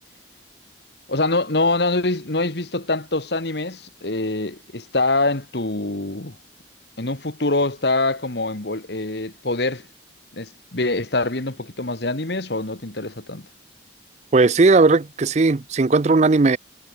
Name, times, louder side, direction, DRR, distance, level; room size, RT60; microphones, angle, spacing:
voice 1, 1.1-6.4 7.0-9.8 10.4-13.5, left 2 dB, 60° left, 1.9 m, -24 dB
voice 2, 14.3-16.6, right 3 dB, 35° right, 0.5 m, -16 dB
head